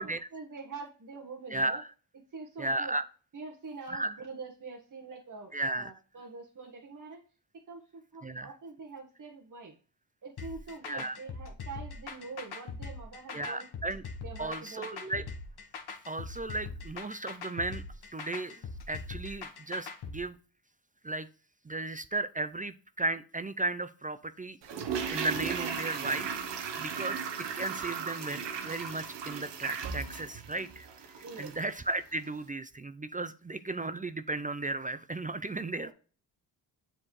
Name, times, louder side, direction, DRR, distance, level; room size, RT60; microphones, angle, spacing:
voice 1, 0.3-1.8 2.3-2.9 3.3-7.2 7.7-9.7 10.2-13.7 14.2-15.0 31.2-31.6 35.8-35.9, right 4 dB, 45° right, 0 dB, 1.5 m, -45 dB
voice 2, 1.5-1.9 2.6-3.0 3.9-4.1 5.5-5.9 8.2-8.5 10.9-11.2 13.3-14.0 14.4-15.2 16.1-17.8 18.1-18.6 18.9-20.4 21.0-21.3 21.7-24.6 25.1-26.3 26.8-27.2 27.5-30.9 31.4-35.9, right 2 dB, 20° right, 13 dB, 0.5 m, -35 dB
sound 1, 10.4-20.2, left 4 dB, 60° left, 1.3 m, -41 dB
Toilet flush, 24.6-31.7 32.0-32.1, right 6 dB, 75° right, 1.1 m, -36 dB
7.3 x 4.4 x 3.2 m, 0.38 s
cardioid pair, 65°, 42 cm